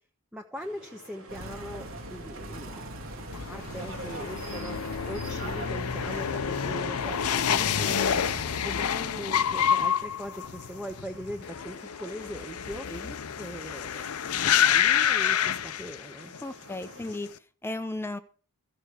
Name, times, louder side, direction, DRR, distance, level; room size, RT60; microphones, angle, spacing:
voice 1, 0.3-2.8 3.3-4.8 5.1-8.2 8.6-12.9 13.4-14.1 14.3-16.3, equal, 5° right, 2 dB, 1.1 m, -40 dB
sound 1, 0.5-17.2, right 1 dB, 85° right, 3.6 m, -52 dB
sound 2, 1.3-8.7, right 1 dB, 65° right, 2.1 m, -40 dB
sound 3, 3.3-16.4 16.7-17.3, left 8 dB, 90° left, 0.6 m, -28 dB
voice 2, 16.4-18.2, left 2 dB, 10° left, 10 dB, 0.7 m, -36 dB
14.0 x 6.2 x 8.2 m, 0.41 s
head